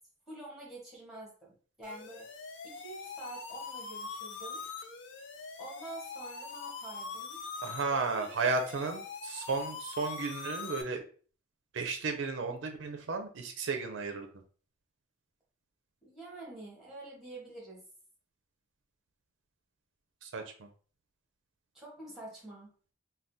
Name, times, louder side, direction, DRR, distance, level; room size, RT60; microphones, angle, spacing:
voice 1, 0.3-1.5 1.8-2.4 2.6-4.6 5.6-7.4 8.1-8.3 16.0-17.8 21.7-22.7, right 2 dB, ahead, -5 dB, 1.2 m, -47 dB
sound 1, 1.8-10.8, left 4 dB, 65° left, 0.4 m, -43 dB
voice 2, 7.6-11.0 11.7-14.4 20.2-20.7, right 4 dB, 70° right, 5 dB, 0.4 m, -34 dB
3.4 x 2.2 x 2.6 m, 0.41 s
head